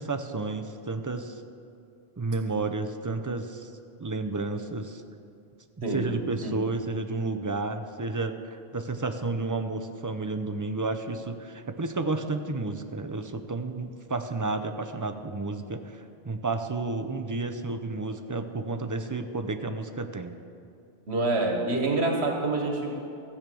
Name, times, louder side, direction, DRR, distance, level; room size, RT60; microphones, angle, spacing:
voice 1, 0.0-1.4 2.2-3.7 4.0-5.0 5.8-20.3, right 3 dB, 25° right, 7 dB, 0.4 m, -31 dB
voice 2, 5.8-6.1 6.4-6.6 21.1-23.1, right 2 dB, 70° right, 2 dB, 1.6 m, -27 dB
14.0 x 8.2 x 6.9 m, 2.5 s
omnidirectional pair, 1.1 m